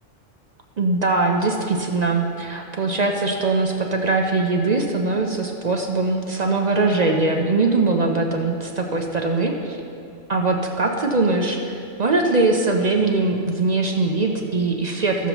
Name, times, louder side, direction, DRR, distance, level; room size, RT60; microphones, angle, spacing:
voice 1, 0.8-9.8 10.3-15.3, right 3 dB, 45° right, 2 dB, 0.6 m, -21 dB
14.0 x 7.1 x 3.0 m, 2.5 s
omnidirectional pair, 1.2 m